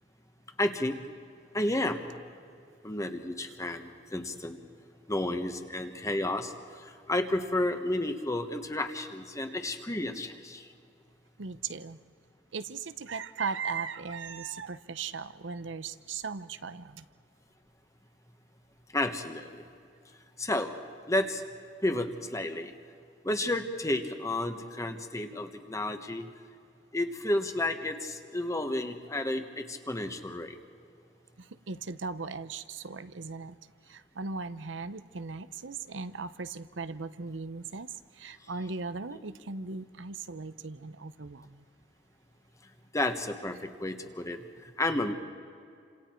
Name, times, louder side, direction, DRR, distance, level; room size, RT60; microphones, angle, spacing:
voice 1, 0.6-1.0 1.5-2.0 2.8-4.6 5.1-10.7 18.9-19.5 20.4-20.7 21.1-21.4 21.8-22.7 23.2-26.2 26.9-30.6 42.9-44.4 44.8-45.1, left 1 dB, 15° left, 7 dB, 1.3 m, -31 dB
voice 2, 11.4-12.0 12.5-17.0 31.4-33.6 33.9-41.6, right 4 dB, 85° right, 13 dB, 0.8 m, -38 dB
29.5 x 26.5 x 4.5 m, 2.4 s
head